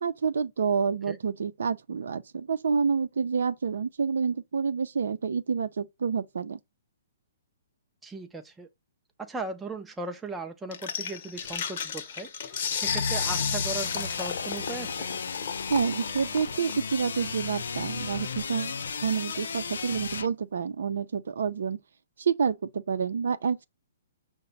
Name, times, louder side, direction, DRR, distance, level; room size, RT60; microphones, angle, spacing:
voice 1, 0.0-6.6 15.7-21.8 22.2-23.7, right 6 dB, 80° right, 0.5 m, -28 dB
voice 2, 8.0-8.7 9.2-15.1, right 3 dB, 5° right, 0.4 m, -38 dB
sound 1, 10.7-20.0, left 7 dB, 50° left, 0.7 m, -35 dB
sound 2, 12.8-20.3, left 5 dB, 85° left, 0.5 m, -34 dB
5.8 x 2.1 x 3.9 m
hypercardioid pair, 165°, 0 cm